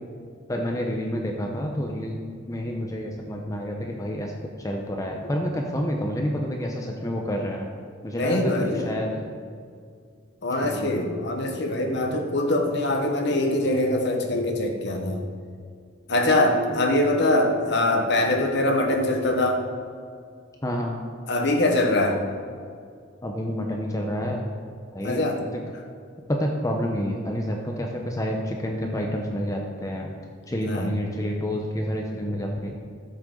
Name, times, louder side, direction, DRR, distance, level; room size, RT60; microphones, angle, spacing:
voice 1, 0.5-2.2 2.5-4.3 4.6-7.7 8.0-9.2 10.5-10.9 16.8-16.9 20.6-21.0 23.2-24.4 24.9-25.6 26.3-30.1 30.5-32.7, equal, 15° left, 1 dB, 0.8 m, -29 dB
voice 2, 8.1-8.9 10.4-15.2 16.1-19.6 21.3-22.2 25.0-25.4 30.7-30.9, left 1 dB, 60° left, 3 dB, 1.3 m, -23 dB
13.0 x 7.9 x 3.8 m, 2.2 s
head